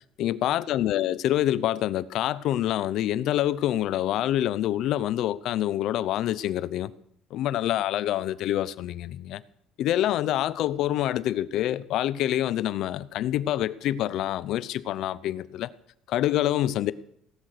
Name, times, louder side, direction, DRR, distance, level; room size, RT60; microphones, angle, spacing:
voice 1, 0.2-6.9 7.3-9.4 9.8-15.7 16.1-16.9, left 13 dB, 55° left, 0.7 m, -26 dB
17.5 x 12.0 x 6.7 m
cardioid pair, 170°, 0 cm